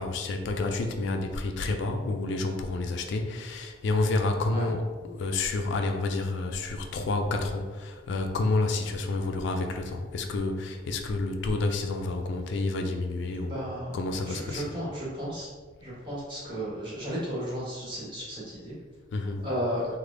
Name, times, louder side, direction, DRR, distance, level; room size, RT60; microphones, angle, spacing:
voice 1, 0.0-13.6 13.9-14.7 19.1-19.5, left 2 dB, 65° left, 5 dB, 0.3 m, -29 dB
voice 2, 13.4-14.0 14.3-15.5 15.8-18.7 19.4-19.9, equal, 25° right, -9 dB, 1.4 m, -34 dB
3.3 x 2.1 x 3.6 m, 1.4 s
head